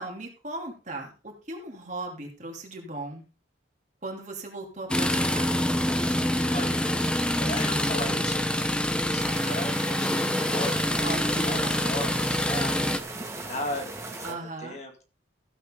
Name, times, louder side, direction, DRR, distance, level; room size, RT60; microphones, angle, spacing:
voice 1, 0.0-3.2 4.0-5.5 11.0-11.9 14.2-14.8, right 2 dB, 40° right, 1 dB, 3.1 m, -37 dB
sound 1, 4.9-13.0, left 1 dB, 5° left, 0.8 m, -26 dB
voice 2, 6.5-13.0 13.5-15.0, left 1 dB, 35° left, 4 dB, 2.2 m, -37 dB
sound 2, 9.2-14.3, right 2 dB, 15° right, 2.1 m, -38 dB
15.0 x 7.9 x 3.8 m, 0.33 s
head